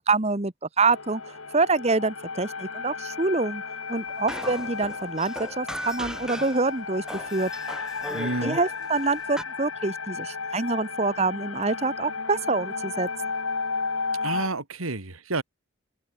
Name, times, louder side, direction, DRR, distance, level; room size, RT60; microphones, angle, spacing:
voice 1, 0.0-3.6 3.9-7.0 7.3-7.5 8.1-13.1, right 3 dB, 30° right, 1.3 m, -26 dB
sound 1, 0.8-14.5, left 4 dB, 85° left, 3.4 m, -34 dB
sound 2, 4.3-6.6 7.1-9.4, equal, 5° right, 2.1 m, -37 dB
voice 2, 8.1-8.6 14.2-15.4, right 2 dB, 90° right, 2.5 m, -29 dB
open air
head